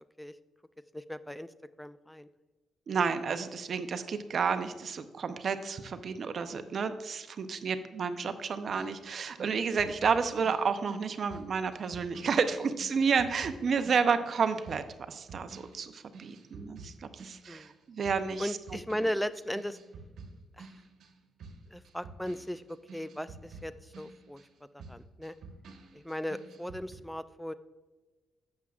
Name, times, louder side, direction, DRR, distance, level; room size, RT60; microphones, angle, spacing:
voice 1, 0.9-1.5 1.8-2.3 2.9-3.0 17.5-17.7 18.4-19.8 20.6-20.7 21.7-22.6 22.9-24.4 24.7-25.3 25.9-27.5, equal, 5° left, 14 dB, 0.3 m, -37 dB
voice 2, 2.9-18.6, right 5 dB, 55° right, 10 dB, 0.7 m, -31 dB
sound 1, 8.7-17.8 18.0-27.0, right 3 dB, 70° right, 1.2 m, -50 dB
12.0 x 7.5 x 2.4 m, 1.2 s
supercardioid pair, 60°, 0 cm